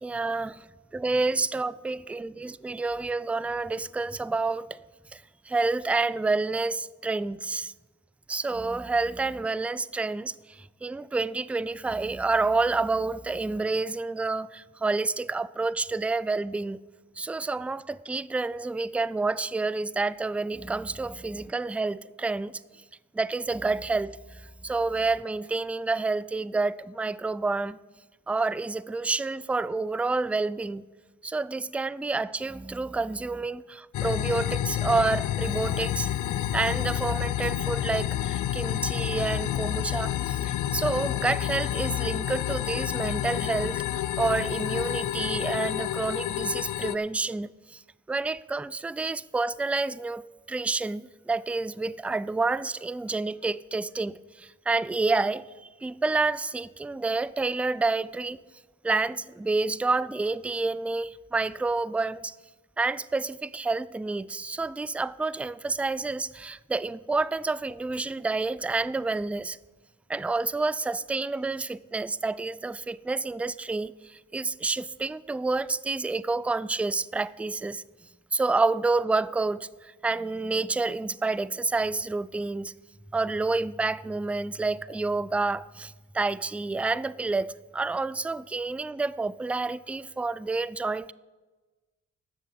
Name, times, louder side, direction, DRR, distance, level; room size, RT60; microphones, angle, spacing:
voice 1, 0.0-0.5 0.9-4.7 5.1-7.7 8.3-16.8 17.2-22.6 23.1-27.8 28.3-30.8 31.2-43.8 44.2-47.8 48.1-58.4 58.8-62.4 62.8-69.6 70.1-77.8 78.3-82.7 83.1-91.1, right 3 dB, 5° right, 0.3 m, -29 dB
sound 1, 33.9-47.0, left 12 dB, 65° left, 0.6 m, -29 dB
11.0 x 6.6 x 8.4 m
supercardioid pair, 60°, 32 cm